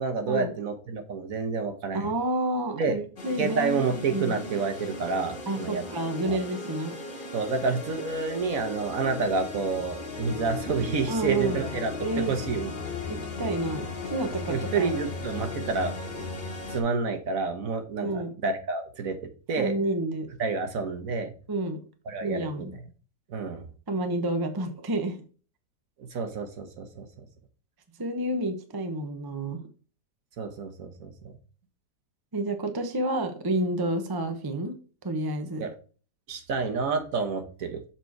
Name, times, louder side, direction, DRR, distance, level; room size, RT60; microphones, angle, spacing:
voice 1, 0.0-2.1 2.7-3.0 3.4-5.8 6.3-6.4 7.3-11.9 12.3-12.7 14.5-16.2 16.7-19.2 19.5-19.7 20.4-21.3 22.1-22.7 23.3-23.7 26.1-27.2 30.4-31.3 35.6-35.7 36.3-37.8, right 4 dB, 60° right, 6 dB, 1.4 m, -29 dB
voice 2, 1.9-4.4 5.5-7.0 11.1-11.6 12.0-12.4 13.1-14.9 18.0-18.3 19.6-20.3 21.5-21.8 22.2-22.7 23.9-25.2 28.0-29.6 32.3-34.7 35.0-35.6, right 1 dB, 20° right, 7 dB, 0.7 m, -29 dB
sound 1, 3.2-16.8, left 3 dB, 35° left, 1.5 m, -37 dB
7.0 x 4.4 x 4.6 m, 0.38 s
omnidirectional pair, 1.7 m